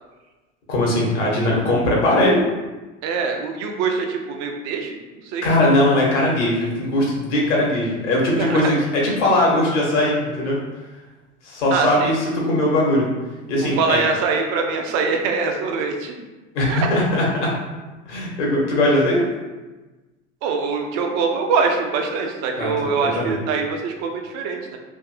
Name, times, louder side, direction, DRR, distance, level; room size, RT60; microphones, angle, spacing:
voice 1, 0.7-2.4 5.4-10.6 11.4-13.1 13.5-14.0 16.5-17.5 18.1-19.2 22.6-23.4, left 1 dB, 70° left, -3 dB, 1.2 m, -20 dB
voice 2, 3.0-5.5 8.4-8.7 11.7-12.1 13.6-16.2 16.7-16.9 20.4-24.8, right 5 dB, 45° right, 3 dB, 0.6 m, -23 dB
3.5 x 2.6 x 2.5 m, 1.2 s
hypercardioid pair, 75°, 37 cm